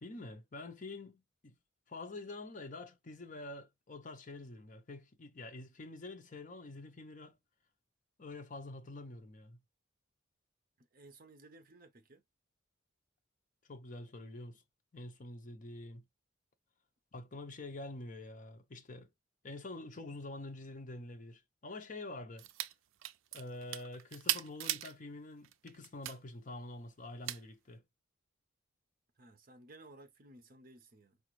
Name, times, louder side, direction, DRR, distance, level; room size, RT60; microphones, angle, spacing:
voice 1, 0.0-1.6 1.9-7.4 8.2-9.6 13.7-14.6 14.9-16.1 17.1-19.1 19.4-22.5 23.3-27.8, left 2 dB, 40° left, 0.7 m, -47 dB
voice 2, 10.8-12.2 29.2-31.2, right 2 dB, 45° right, 0.8 m, -57 dB
sound 1, 22.4-22.7 23.0-24.9 25.4-26.2 27.2-27.4, right 13 dB, 80° right, 0.3 m, -37 dB
4.9 x 2.4 x 3.1 m
head